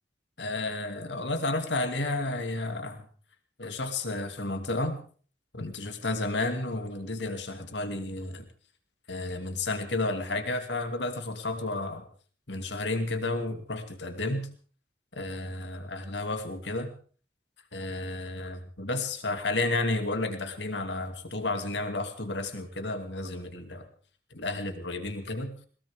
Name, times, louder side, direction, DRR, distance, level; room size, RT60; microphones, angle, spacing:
voice 1, 0.4-3.1 3.6-5.0 5.5-8.5 9.1-12.0 12.5-14.5 15.1-16.9 17.7-23.9 24.3-25.5, left 2 dB, 85° left, 7 dB, 2.5 m, -32 dB
21.5 x 18.0 x 3.6 m, 0.43 s
head